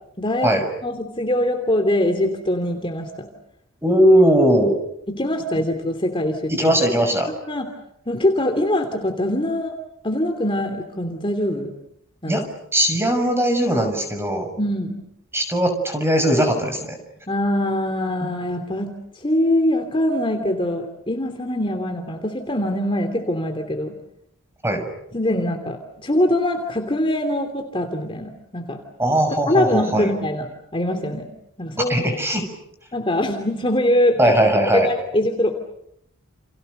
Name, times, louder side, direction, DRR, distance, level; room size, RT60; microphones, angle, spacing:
voice 1, 0.2-0.5 0.8-3.3 5.1-6.7 7.5-7.7 8.1-9.7 10.0-11.7 12.2-12.4 14.6-15.0 17.3-23.9 25.1-28.8 29.5-30.5 30.7-31.2 31.6-32.2 32.9-34.2 34.7-35.5, left 1 dB, 25° left, 4 dB, 2.8 m, -23 dB
voice 2, 3.8-4.8 6.5-7.3 12.3-12.4 12.7-14.5 15.3-17.0 24.6-24.9 29.0-30.1 31.9-32.4 34.2-34.9, right 1 dB, 10° right, 6 dB, 6.2 m, -19 dB
30.0 x 29.5 x 6.7 m, 0.76 s
head